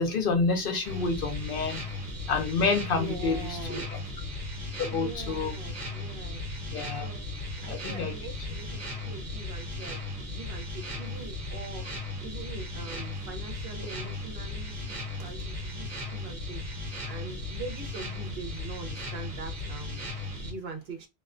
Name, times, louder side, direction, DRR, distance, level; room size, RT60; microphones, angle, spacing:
voice 1, 0.0-1.9 2.3-3.4 3.7-3.8 4.8-5.5 6.7-7.1 7.6-8.1, left 4 dB, 65° left, 0.7 m, -28 dB
sound 1, 0.8-20.5, left 2 dB, 45° right, 1.0 m, -36 dB
voice 2, 2.9-3.9 4.9-6.4 6.9-7.3 7.6-21.1, right 3 dB, 70° right, 0.9 m, -43 dB
2.4 x 2.1 x 2.4 m
omnidirectional pair, 1.1 m